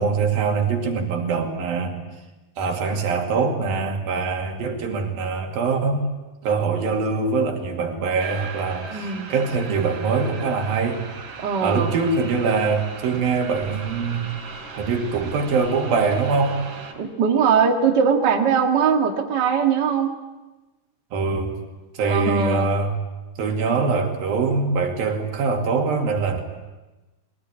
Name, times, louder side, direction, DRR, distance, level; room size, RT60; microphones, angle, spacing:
voice 1, 0.0-2.0 2.6-6.1 6.4-11.0 11.6-14.3 14.7-16.6 21.1-21.6 21.9-22.9 23.4-26.4, right 4 dB, 85° right, 2 dB, 4.3 m, -23 dB
sound 1, 8.2-16.9, right 5 dB, 65° right, 5.1 m, -38 dB
voice 2, 8.9-9.3 11.4-11.9 17.0-20.2 22.1-22.7, right 6 dB, 35° right, 2 dB, 2.1 m, -21 dB
22.0 x 19.0 x 9.9 m, 1.1 s
omnidirectional pair, 4.0 m